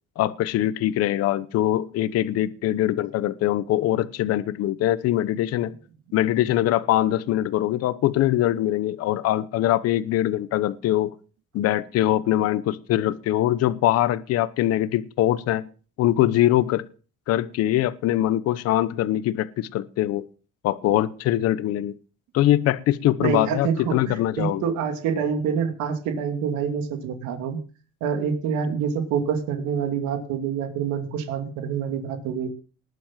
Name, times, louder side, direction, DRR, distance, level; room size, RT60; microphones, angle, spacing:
voice 1, 0.2-5.7 6.1-11.1 11.5-15.7 16.0-16.8 17.3-20.2 20.6-21.9 22.3-24.6, left 13 dB, 55° left, 16 dB, 1.0 m, -22 dB
voice 2, 23.2-27.6 28.0-32.5, right 7 dB, 80° right, 6 dB, 2.7 m, -26 dB
19.5 x 7.8 x 7.5 m, 0.39 s
cardioid pair, 170°, 29 cm